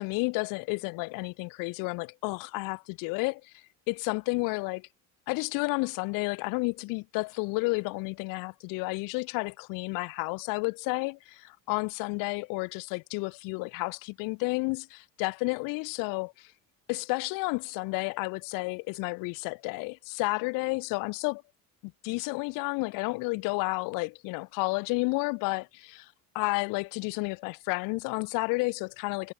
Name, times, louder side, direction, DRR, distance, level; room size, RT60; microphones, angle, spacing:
voice 1, 0.0-4.9 5.3-16.5 16.9-21.4 21.8-29.3, left 28 dB, 75° left, 0.6 m, -31 dB
cardioid pair, 145°, 34 cm